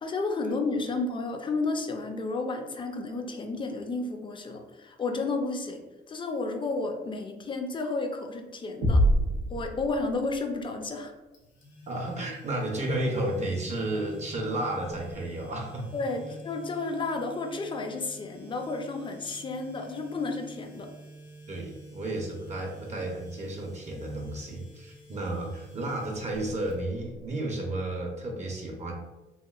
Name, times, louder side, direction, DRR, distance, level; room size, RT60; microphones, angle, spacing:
voice 1, 0.0-5.8 6.1-9.0 9.5-11.1 15.9-20.9, left 3 dB, 25° left, 4 dB, 0.4 m, -32 dB
sound 1, 8.8-10.5, equal, 85° right, 0.6 m, -25 dB
sound 2, 11.3-27.3, left 2 dB, 80° left, 0.9 m, -49 dB
voice 2, 11.9-15.9 16.2-16.3 21.5-28.9, right 1 dB, 35° right, 0 dB, 0.5 m, -32 dB
2.9 x 2.5 x 2.3 m, 1.1 s
cardioid pair, 90°, 20 cm